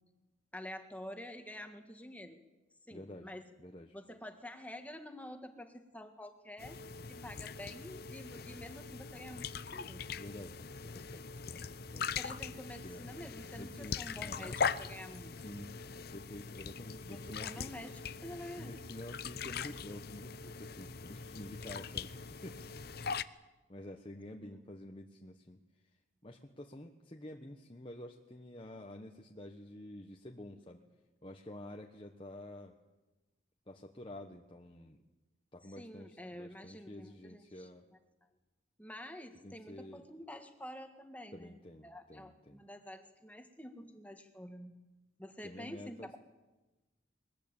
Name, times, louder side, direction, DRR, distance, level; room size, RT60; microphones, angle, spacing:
voice 1, 0.5-2.4 2.9-3.4 3.9-6.8 7.1-10.1 12.2-15.4 17.1-18.7 24.4-24.6 35.7-38.0 38.8-44.8 45.2-46.2, left 1 dB, 10° left, 6 dB, 1.7 m, -48 dB
voice 2, 2.9-3.3 3.6-4.0 10.2-12.1 12.8-13.1 13.6-14.6 15.3-15.7 16.1-17.7 18.5-22.6 23.0-23.4 23.7-25.6 26.2-30.8 31.2-32.7 33.7-35.0 35.5-37.8 39.4-40.1 41.3-42.6 45.4-46.2, left 1 dB, 25° left, 2 dB, 1.2 m, -49 dB
sound 1, 6.6-23.2, left 5 dB, 55° left, 0.7 m, -41 dB
21.5 x 20.5 x 9.0 m, 1.1 s
head